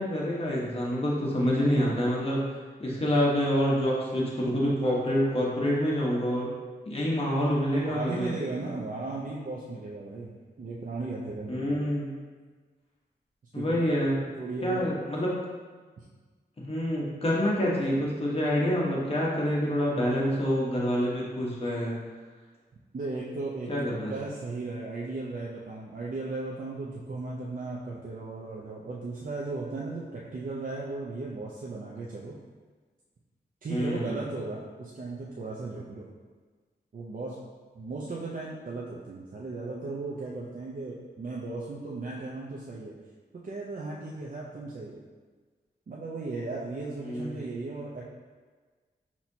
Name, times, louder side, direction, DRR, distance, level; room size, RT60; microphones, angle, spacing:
voice 1, 0.0-2.4 2.8-6.5 6.9-8.3 11.5-12.1 13.5-14.2 14.6-15.3 16.6-22.0 23.7-24.1 33.7-34.2 47.0-47.4, equal, 35° left, -5 dB, 1.1 m, -27 dB
voice 2, 7.7-11.6 13.5-14.0 14.2-15.0 16.0-16.1 22.9-32.4 33.6-36.1 36.9-37.4 37.7-42.9 43.4-45.0 45.9-48.0, right 3 dB, 50° right, -4 dB, 0.6 m, -36 dB
5.9 x 2.9 x 2.7 m, 1.4 s
cardioid pair, 65°, 17 cm